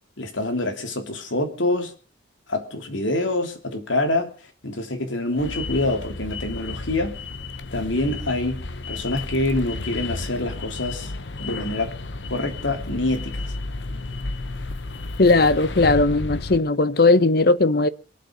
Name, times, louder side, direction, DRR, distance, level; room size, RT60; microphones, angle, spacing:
voice 1, 0.2-1.9 2.5-4.3 4.6-7.2 7.7-11.1 11.4-11.9 12.3-13.4, left 2 dB, 90° left, 3.1 m, -26 dB
sound 1, 5.4-16.6, left 2 dB, 75° left, 1.1 m, -32 dB
voice 2, 15.2-17.9, left 3 dB, 55° left, 0.8 m, -17 dB
23.5 x 8.3 x 6.6 m
head